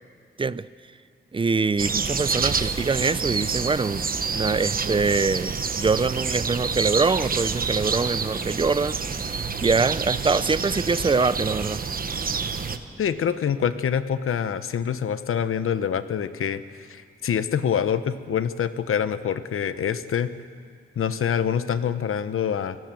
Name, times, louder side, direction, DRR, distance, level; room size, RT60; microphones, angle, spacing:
voice 1, 1.3-9.3 9.6-11.8, right 4 dB, 25° right, 0.5 m, -24 dB
sound 1, 1.8-12.8, right 5 dB, 45° right, 1.1 m, -28 dB
sound 2, 5.5-13.7, equal, 10° right, 2.7 m, -50 dB
voice 2, 13.0-20.3 21.0-22.8, left 8 dB, 85° left, 1.1 m, -26 dB
29.5 x 17.0 x 7.7 m
wide cardioid pair, 130°, 21 cm